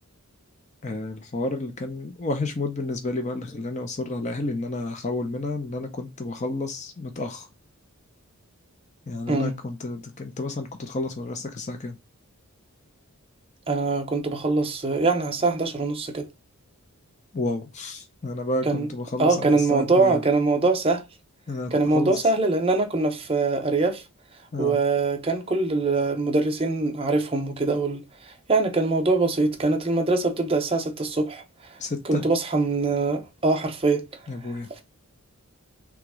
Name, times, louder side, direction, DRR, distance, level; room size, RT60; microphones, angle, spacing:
voice 1, 0.8-7.5 9.1-11.9 17.3-20.2 21.5-22.2 24.5-24.8 31.8-32.2 34.3-34.7, left 2 dB, 30° left, 0.6 m, -31 dB
voice 2, 13.7-16.3 18.6-18.9 19.2-21.0 21.7-24.0 24.6-28.0 28.5-31.4 32.0-34.0, right 3 dB, 25° right, 0.7 m, -23 dB
3.5 x 3.0 x 4.8 m
head